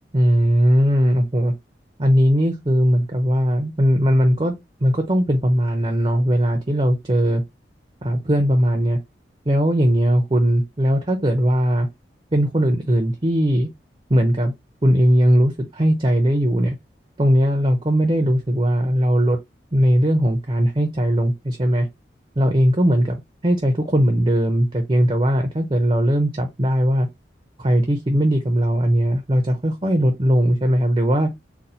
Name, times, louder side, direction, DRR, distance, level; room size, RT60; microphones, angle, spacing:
voice 1, 0.1-1.5 2.0-4.5 4.8-7.4 8.0-9.0 9.5-11.9 12.3-13.7 14.1-14.5 14.8-16.8 17.2-19.4 19.7-21.9 22.4-27.1 27.6-31.3, equal, 30° right, 0.6 m, -19 dB
4.1 x 2.1 x 4.2 m
head